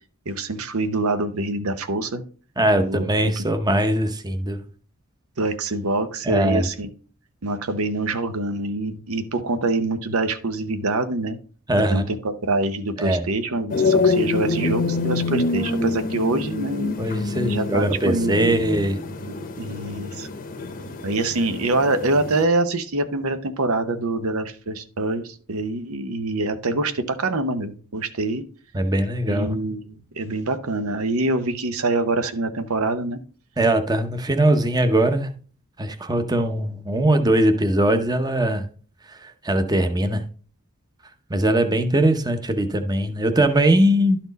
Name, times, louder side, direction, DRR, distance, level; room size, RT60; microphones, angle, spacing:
voice 1, 0.3-2.2 2.8-3.1 5.4-6.9 7.4-11.4 11.9-17.0 17.4-18.6 19.3-20.3 21.0-28.4 29.3-33.2, right 2 dB, 85° right, 0.8 m, -25 dB
voice 2, 2.6-4.6 6.3-6.7 11.7-12.1 13.0-13.2 17.0-19.0 28.7-29.5 33.6-35.3 35.8-38.7 39.2-40.2 41.3-44.2, right 1 dB, 20° right, 0.7 m, -21 dB
sound 1, 13.7-22.4, left 3 dB, 40° left, 0.8 m, -26 dB
11.5 x 4.4 x 4.0 m
head